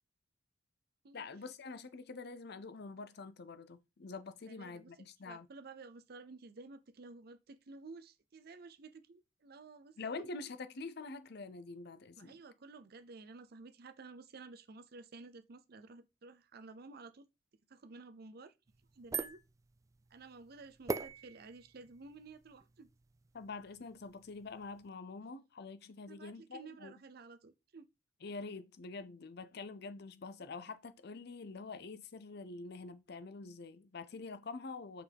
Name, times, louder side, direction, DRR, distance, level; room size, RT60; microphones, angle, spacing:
voice 1, 1.1-5.5 10.0-12.4 23.3-26.9 28.2-35.0, left 3 dB, 60° left, 0.6 m, -46 dB
voice 2, 4.5-4.9 5.2-10.3 12.2-17.3 17.7-18.5 18.9-19.4 20.1-22.9 26.0-27.9, right 3 dB, 55° right, 0.6 m, -53 dB
sound 1, 18.7-24.9, right 4 dB, 15° right, 0.3 m, -45 dB
6.0 x 4.7 x 3.5 m
head